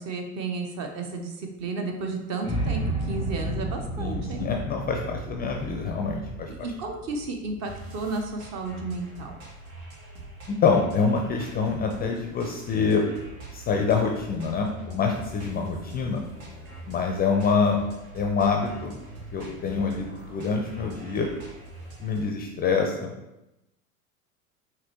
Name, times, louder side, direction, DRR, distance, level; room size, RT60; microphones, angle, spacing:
voice 1, 0.0-2.8 3.1-4.5 6.5-9.4, right 3 dB, 40° right, 3 dB, 0.8 m, -33 dB
sound 1, 2.4-8.6, right 1 dB, 15° right, 0.9 m, -32 dB
voice 2, 4.0-6.5 10.5-13.0 13.5-16.2 16.9-17.8 18.1-18.9 19.3-21.3 22.0-23.1, left 5 dB, 25° left, 2 dB, 0.4 m, -26 dB
sound 2, 7.6-22.2, right 2 dB, 75° right, 1.4 m, -43 dB
5.0 x 3.0 x 3.0 m, 0.93 s
hypercardioid pair, 90°, 42 cm